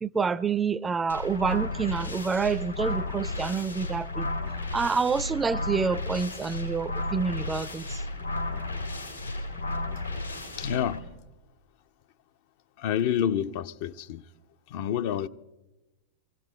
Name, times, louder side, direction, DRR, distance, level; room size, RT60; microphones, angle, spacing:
voice 1, 0.0-4.3 4.7-8.0, right 5 dB, 15° right, 0.5 m, -28 dB
sound 1, 1.1-11.0, left 2 dB, 90° left, 2.5 m, -33 dB
voice 2, 10.6-11.1 12.8-14.2 14.7-15.3, left 10 dB, 50° left, 0.5 m, -28 dB
23.5 x 16.5 x 3.1 m
figure-of-eight pair, 90°, 0 cm